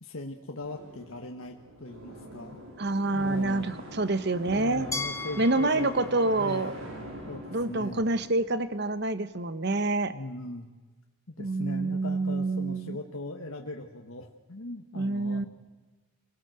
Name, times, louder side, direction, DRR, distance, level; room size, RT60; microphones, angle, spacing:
voice 1, 0.0-2.6 3.1-3.8 4.4-6.9 7.3-8.0 10.1-10.7 11.3-15.4, left 2 dB, 85° left, 3 dB, 1.5 m, -40 dB
sound 1, 0.6-9.4, right 1 dB, 80° right, 5.0 m, -44 dB
voice 2, 2.8-4.9 5.4-6.7 7.5-10.1 11.4-13.0 14.9-15.4, right 2 dB, 55° right, 12 dB, 1.2 m, -27 dB
Glass, 4.9-7.8, left 3 dB, 15° left, 1.5 m, -39 dB
27.0 x 17.5 x 7.9 m, 1.3 s
head